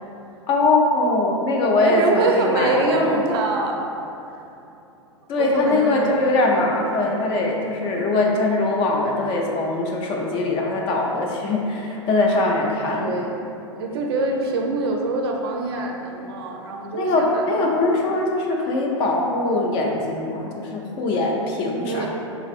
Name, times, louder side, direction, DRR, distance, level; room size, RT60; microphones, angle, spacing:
voice 1, 0.5-3.2 5.3-13.1 16.9-22.1, left 2 dB, 30° left, -1 dB, 0.4 m, -22 dB
voice 2, 1.8-3.8 5.4-6.2 6.6-6.8 12.9-18.0 21.8-22.1, right 2 dB, 55° right, 1 dB, 0.4 m, -25 dB
3.9 x 2.4 x 2.4 m, 2.8 s
figure-of-eight pair, 95°, 16 cm